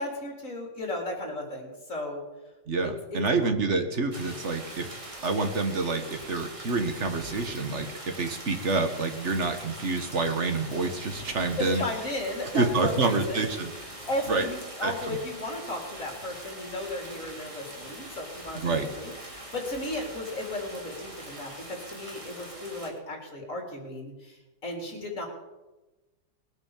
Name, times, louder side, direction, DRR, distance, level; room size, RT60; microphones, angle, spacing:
voice 1, 0.0-2.2 3.1-3.5 11.6-13.5 14.1-25.3, left 1 dB, 40° left, 1 dB, 4.3 m, -35 dB
voice 2, 2.7-4.9 5.2-11.8 12.5-14.0 14.3-14.5 14.8-15.2 18.6-18.9, right 3 dB, 40° right, 6 dB, 1.7 m, -28 dB
sound 1, 4.1-22.9, right 1 dB, 15° right, 3.2 m, -43 dB
20.0 x 9.2 x 7.4 m, 1.1 s
omnidirectional pair, 2.0 m